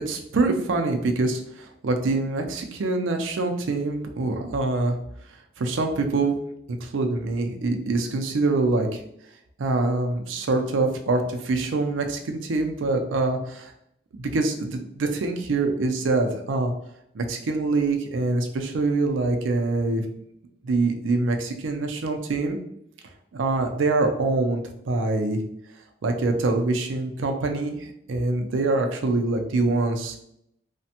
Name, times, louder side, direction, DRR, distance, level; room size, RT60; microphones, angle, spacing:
voice 1, 0.1-5.0 5.2-6.4 6.7-9.0 9.6-13.7 14.2-16.7 17.1-20.0 20.6-22.6 23.3-25.4 26.0-30.2, right 3 dB, 90° right, 5 dB, 0.4 m, -25 dB
3.2 x 2.1 x 2.8 m, 0.75 s
head